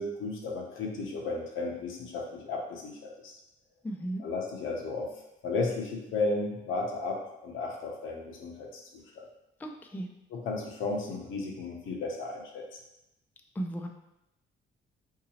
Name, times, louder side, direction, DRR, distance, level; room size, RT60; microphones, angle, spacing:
voice 1, 0.0-3.3 4.2-5.1 5.4-9.2 10.3-12.6, left 3 dB, 80° left, 0 dB, 0.7 m, -34 dB
voice 2, 3.8-4.3 9.6-10.1 13.5-13.9, right 1 dB, 10° left, 3 dB, 0.3 m, -35 dB
3.8 x 2.7 x 2.8 m, 0.88 s
cardioid pair, 90°, 20 cm